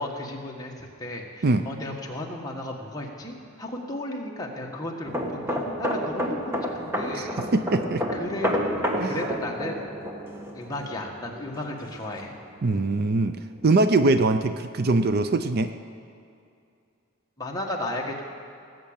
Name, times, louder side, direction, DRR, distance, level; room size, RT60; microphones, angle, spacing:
voice 1, 0.0-7.4 8.1-9.8 10.5-12.3 17.4-18.2, left 1 dB, 15° left, -1 dB, 1.6 m, -34 dB
sound 1, 5.0-12.5 12.8-13.1, equal, 10° right, 1.3 m, -30 dB
voice 2, 7.1-8.0 9.0-9.2 12.6-13.4 13.6-15.7, right 2 dB, 45° right, 10 dB, 0.5 m, -22 dB
18.5 x 7.6 x 8.7 m, 2.5 s
head